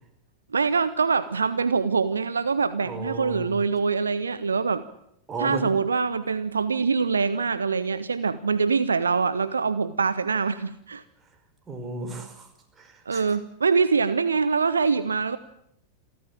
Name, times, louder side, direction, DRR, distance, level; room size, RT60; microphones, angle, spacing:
voice 1, 0.5-4.8 5.4-11.0 13.1-15.4, right 5 dB, 75° right, 15 dB, 0.9 m, -24 dB
voice 2, 2.8-3.5 5.3-5.8 11.7-12.5 12.8-13.2, right 2 dB, 20° right, 5 dB, 5.3 m, -34 dB
28.0 x 14.0 x 8.9 m, 0.76 s
figure-of-eight pair, 90°, 0 cm